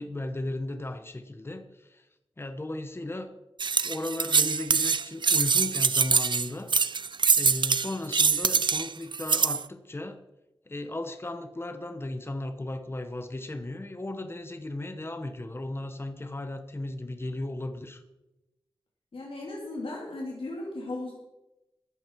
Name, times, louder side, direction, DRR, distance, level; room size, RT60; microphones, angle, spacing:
voice 1, 0.0-2.0 2.4-3.3 3.8-6.7 7.4-10.2 10.7-18.0, left 2 dB, 25° left, 8 dB, 1.0 m, -35 dB
sound 1, 3.6-9.6, right 5 dB, 55° right, 0.5 m, -24 dB
voice 2, 19.1-21.1, left 2 dB, 75° left, -3 dB, 2.8 m, -36 dB
14.0 x 10.0 x 4.6 m, 0.98 s
wide cardioid pair, 80°, 9 cm